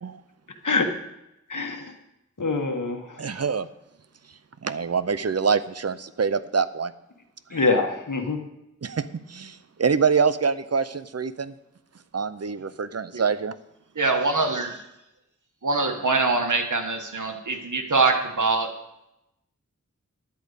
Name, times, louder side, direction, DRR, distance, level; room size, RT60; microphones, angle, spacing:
voice 1, 1.5-1.9 2.4-3.2 7.5-8.4, left 3 dB, 90° left, 4 dB, 1.2 m, -24 dB
voice 2, 3.2-3.7 4.6-6.9 7.5-7.6 8.8-11.5 12.1-13.5, right 5 dB, 55° right, 14 dB, 0.6 m, -25 dB
voice 3, 13.9-14.8 15.6-18.7, right 3 dB, 80° right, 4 dB, 1.4 m, -23 dB
10.5 x 5.1 x 8.2 m, 0.89 s
wide cardioid pair, 40°, 30 cm